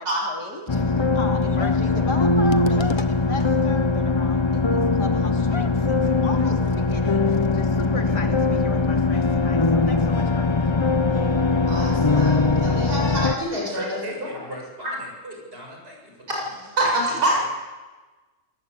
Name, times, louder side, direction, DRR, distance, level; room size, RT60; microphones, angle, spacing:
voice 1, 0.0-10.7, left 2 dB, 90° left, 3 dB, 3.3 m, -36 dB
sound 1, 0.7-13.3, left 3 dB, 35° left, 0.4 m, -21 dB
voice 2, 11.7-14.0 16.3-17.5, right 1 dB, 70° right, -1 dB, 7.9 m, -26 dB
voice 3, 13.2-16.5 16.8-17.0 17.4-17.5, right 1 dB, 35° right, 0 dB, 7.9 m, -38 dB
26.0 x 19.0 x 8.4 m, 1.3 s
omnidirectional pair, 1.7 m